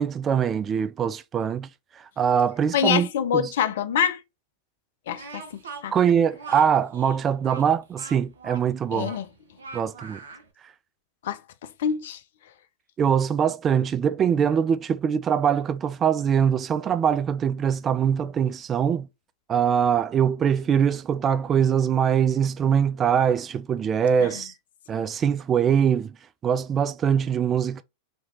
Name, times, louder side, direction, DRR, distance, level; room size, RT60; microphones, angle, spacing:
voice 1, 0.0-1.7 2.0-3.1 3.3-3.5 5.9-9.1 9.7-10.2 13.0-19.1 19.5-24.5 24.9-26.2 26.4-27.8, right 8 dB, 25° right, 0.3 m, -23 dB
voice 2, 2.7-4.2 5.1-5.4 5.8-5.9 8.9-9.3 11.2-11.4 11.8-12.2 24.2-24.4, left 8 dB, 60° left, 0.4 m, -25 dB
Speech, 5.1-10.5, right 3 dB, 70° right, 0.7 m, -41 dB
3.2 x 2.8 x 2.7 m
figure-of-eight pair, 90°, 0 cm